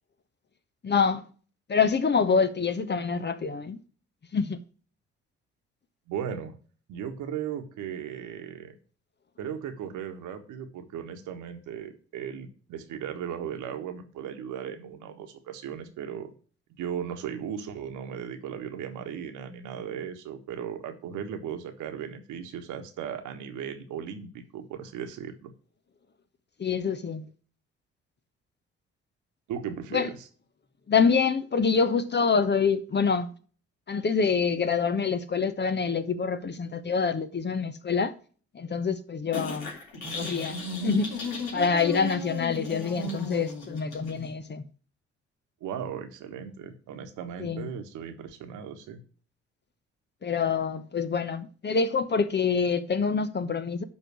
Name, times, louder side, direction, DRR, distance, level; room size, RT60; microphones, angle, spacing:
voice 1, 0.8-1.2 1.7-3.8 4.3-4.6 26.6-27.3 29.9-30.1 30.9-33.3 33.9-38.1 38.5-39.7 40.1-41.1 41.5-44.7 47.4-47.7 50.2-53.8, left 5 dB, 30° left, 1.1 m, -26 dB
voice 2, 6.1-6.6 6.9-8.8 9.4-16.3 16.8-25.5 29.5-30.3 45.6-49.0, right 8 dB, 65° right, 1.5 m, -37 dB
sound 1, 39.3-44.3, left 1 dB, 65° left, 3.3 m, -35 dB
11.5 x 3.9 x 6.3 m
hypercardioid pair, 45°, 33 cm